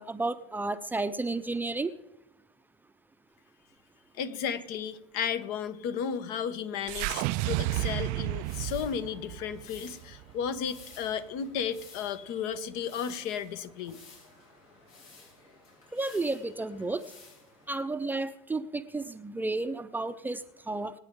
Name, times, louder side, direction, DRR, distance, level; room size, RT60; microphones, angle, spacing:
voice 1, 0.0-1.9 15.9-17.0 17.7-20.9, right 2 dB, 10° right, 11 dB, 0.6 m, -32 dB
voice 2, 4.1-14.0, left 7 dB, 60° left, 12 dB, 1.2 m, -34 dB
sound 1, 6.9-11.2, right 20 dB, 55° right, 0.4 m, -32 dB
sound 2, 8.4-17.7, left 4 dB, 80° left, 6.7 m, -54 dB
25.0 x 8.9 x 3.8 m, 0.93 s
hypercardioid pair, 90°, 18 cm